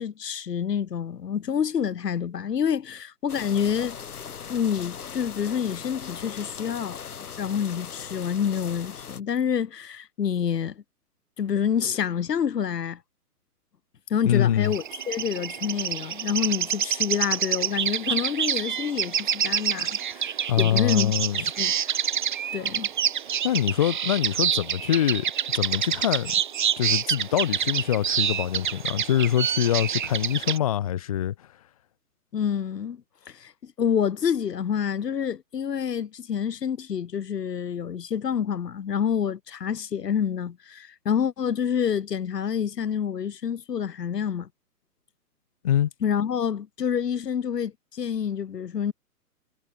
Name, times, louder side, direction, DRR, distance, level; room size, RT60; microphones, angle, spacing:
voice 1, 0.0-3.9 4.5-7.0 7.4-10.8 11.4-13.0 14.1-21.1 21.4-21.9 22.5-22.9 32.3-44.5 46.0-48.9, left 8 dB, 85° left, 1.3 m, -28 dB
sound 1, 3.3-9.2, left 7 dB, 65° left, 5.7 m, -39 dB
voice 2, 14.2-14.7 20.5-21.4 23.4-26.3 26.8-31.3 45.6-45.9, left 11 dB, 25° left, 0.8 m, -24 dB
sound 2, 14.6-30.6, right 9 dB, 30° right, 0.7 m, -27 dB
hypercardioid pair, 155°, 47 cm